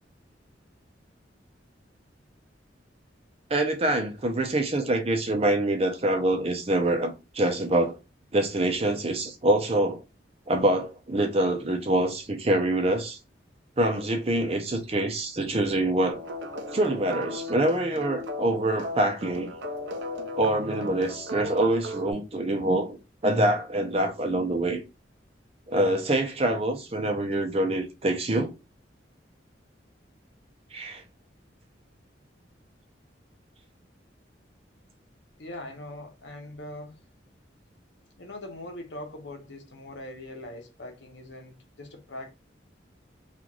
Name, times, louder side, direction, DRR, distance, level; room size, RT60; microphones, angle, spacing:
voice 1, 3.5-8.0 8.3-10.0 10.5-13.2 13.8-16.2 16.7-19.5 20.3-23.0 23.2-24.8 25.7-28.5 30.7-31.0, right 1 dB, 35° right, 0.6 m, -25 dB
sound 1, 16.1-22.1, left 1 dB, 75° right, 0.6 m, -36 dB
voice 2, 35.4-37.0 38.2-42.3, left 1 dB, 75° left, 0.9 m, -41 dB
3.0 x 2.5 x 2.4 m
head